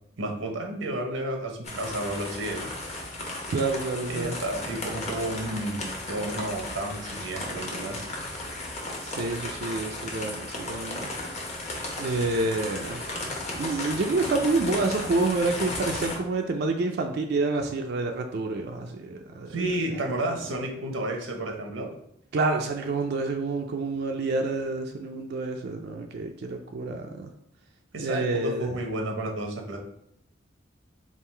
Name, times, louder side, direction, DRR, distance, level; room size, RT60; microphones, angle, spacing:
voice 1, 0.2-2.7 4.1-8.0 19.5-21.9 27.9-29.8, right 1 dB, 90° right, 2 dB, 0.8 m, -31 dB
sound 1, 1.6-16.2, left 2 dB, 35° left, 0.8 m, -35 dB
voice 2, 3.5-4.4 9.0-11.1 12.0-13.0 13.6-19.6 22.3-27.3 28.0-28.7, right 3 dB, 55° right, 3 dB, 0.4 m, -28 dB
3.6 x 2.4 x 4.4 m, 0.76 s
head